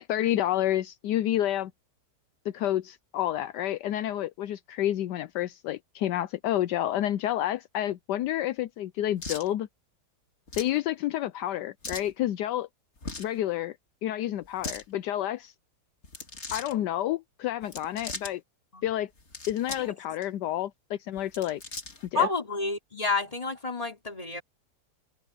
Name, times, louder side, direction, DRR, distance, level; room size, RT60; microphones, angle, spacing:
voice 1, 0.0-1.7 2.5-9.7 10.6-12.7 13.2-13.8 14.0-15.5 16.5-18.4 18.8-19.1 19.5-21.6 22.1-22.3, left 12 dB, 80° left, 1.2 m, -29 dB
sound 1, 9.2-9.5 10.5-10.8 11.8-12.1 13.0-13.4 14.4-14.8 16.0-16.7 17.6-18.3 19.2-19.9 20.2-20.3 21.2-22.1, left 3 dB, 40° left, 2.5 m, -39 dB
voice 2, 22.1-24.4, left 4 dB, 20° left, 3.4 m, -29 dB
omnidirectional pair, 1.8 m